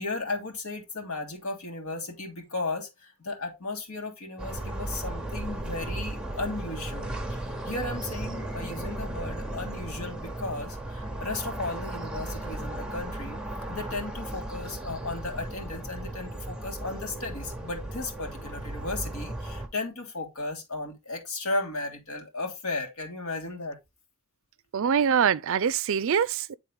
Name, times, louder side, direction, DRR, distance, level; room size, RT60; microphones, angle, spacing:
voice 1, 0.0-13.4 13.7-23.8, left 2 dB, 70° left, 2.0 m, -35 dB
sound 1, 4.4-19.7, right 1 dB, 5° right, 1.0 m, -36 dB
voice 2, 24.7-26.6, right 7 dB, 60° right, 0.4 m, -24 dB
9.3 x 3.8 x 3.4 m
head